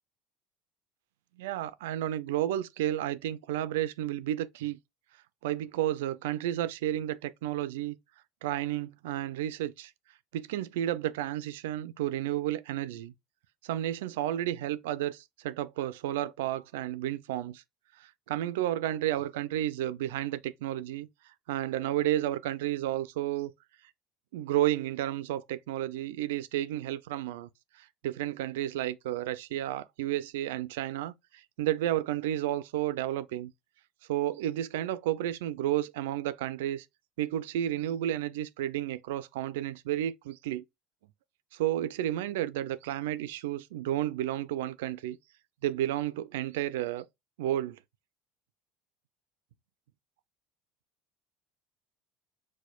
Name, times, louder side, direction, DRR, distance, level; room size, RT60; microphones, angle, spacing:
voice 1, 1.4-4.8 5.4-8.0 8.4-9.9 10.3-13.1 13.6-17.6 18.0-21.1 21.5-23.5 24.3-27.5 27.8-33.5 34.1-36.9 37.2-40.6 41.5-45.2 45.6-47.0 47.4-47.8, right 13 dB, 80° right, 0.3 m, -32 dB
4.8 x 2.1 x 2.3 m
hypercardioid pair, 75°, 0 cm